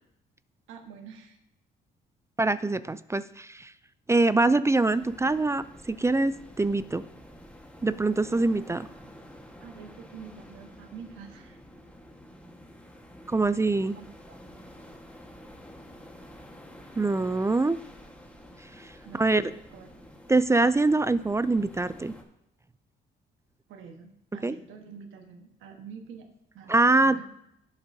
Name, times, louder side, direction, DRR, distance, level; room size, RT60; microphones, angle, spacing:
voice 1, 0.7-1.4 8.4-8.8 9.6-11.6 13.9-14.4 19.0-20.1 23.7-26.3 26.5-27.2, right 6 dB, 90° right, 3 dB, 1.4 m, -47 dB
voice 2, 2.4-3.7 4.1-7.1 7.8-8.9 13.3-14.0 17.0-17.8 18.8-18.9 19.2-19.5 20.3-22.1 24.4-24.6 26.7-27.2, right 2 dB, 15° right, 14 dB, 0.4 m, -24 dB
sound 1, 4.9-22.2, equal, 5° left, 1.4 m, -49 dB
16.5 x 7.0 x 2.7 m, 0.79 s
cardioid pair, 90°, 20 cm